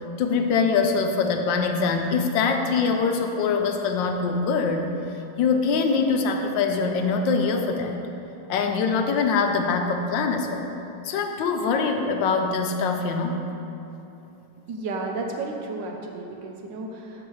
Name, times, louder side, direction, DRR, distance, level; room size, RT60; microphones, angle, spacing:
voice 1, 0.2-4.8 5.4-8.0 8.5-10.7 11.0-13.4, left 5 dB, 80° left, 4 dB, 1.3 m, -23 dB
voice 2, 14.7-17.3, right 3 dB, 75° right, 2 dB, 1.4 m, -33 dB
12.5 x 4.7 x 3.1 m, 2.9 s
omnidirectional pair, 2.1 m